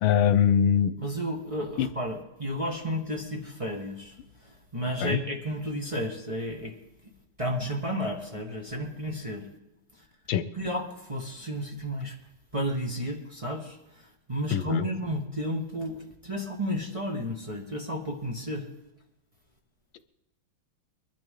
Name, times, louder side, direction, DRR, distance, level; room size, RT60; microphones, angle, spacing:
voice 1, 0.0-0.9 1.8-1.9 5.0-5.2 10.3-10.4 14.5-14.8, left 9 dB, 80° left, 13 dB, 1.5 m, -22 dB
voice 2, 1.0-4.2 4.4-6.8 7.0-7.1 7.4-9.5 10.5-12.2 12.5-18.7, equal, 15° right, -1 dB, 1.5 m, -32 dB
22.5 x 12.0 x 3.8 m, 0.94 s
omnidirectional pair, 2.3 m